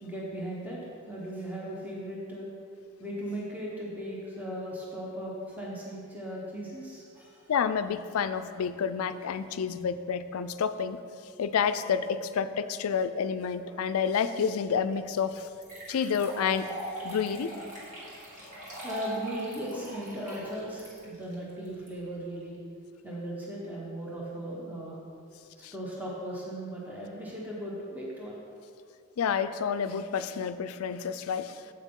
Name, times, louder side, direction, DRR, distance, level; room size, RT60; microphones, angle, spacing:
voice 1, 0.0-0.8 1.1-2.5 3.0-7.5 17.1-17.2 18.8-22.6 23.0-25.0 25.6-28.4, right 1 dB, 10° right, -5 dB, 1.0 m, -37 dB
voice 2, 7.5-11.0 11.4-15.5 15.9-16.7 17.0-17.6 25.6-25.7 29.2-31.6, left 6 dB, 80° left, 12 dB, 0.4 m, -29 dB
sound 1, 14.9-15.0 15.6-21.9, right 1 dB, 35° right, 1.9 m, -41 dB
8.1 x 7.8 x 3.7 m, 2.4 s
head